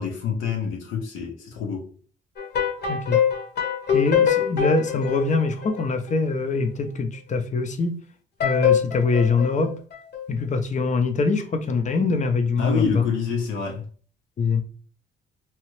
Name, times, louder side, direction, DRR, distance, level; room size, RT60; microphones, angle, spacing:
voice 1, 0.0-1.9 12.6-13.8, left 5 dB, 90° left, 0.9 m, -27 dB
sound 1, 2.4-6.2 8.4-10.2, left 8 dB, 55° left, 1.0 m, -23 dB
voice 2, 2.9-3.2 3.9-8.0 8.4-9.8 10.3-13.1 14.4-14.6, left 4 dB, 40° left, 0.6 m, -23 dB
2.9 x 2.4 x 3.1 m
cardioid pair, 90°, 20 cm